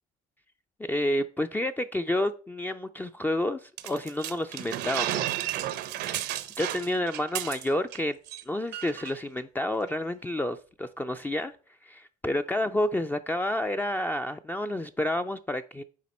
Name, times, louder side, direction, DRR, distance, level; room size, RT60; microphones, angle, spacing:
voice 1, 0.8-5.3 6.0-8.2 8.5-11.5 11.8-15.8, left 1 dB, 10° left, 0.3 m, -30 dB
sound 1, 3.8-8.0 8.3-8.4 8.7-9.1, right 13 dB, 80° right, 0.7 m, -32 dB
9.3 x 4.0 x 4.2 m
cardioid pair, 110°, 17 cm